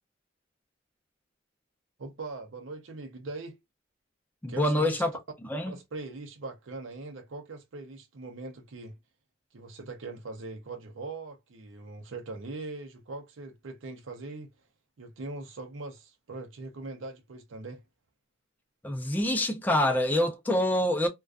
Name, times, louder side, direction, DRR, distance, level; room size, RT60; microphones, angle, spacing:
voice 1, 2.0-3.6 4.5-5.0 5.7-9.0 9.5-14.5 15.0-17.8, right 3 dB, 80° right, 0.5 m, -41 dB
voice 2, 4.4-5.1 5.5-5.7 18.8-21.1, left 1 dB, 10° left, 0.4 m, -26 dB
2.4 x 2.2 x 2.2 m
head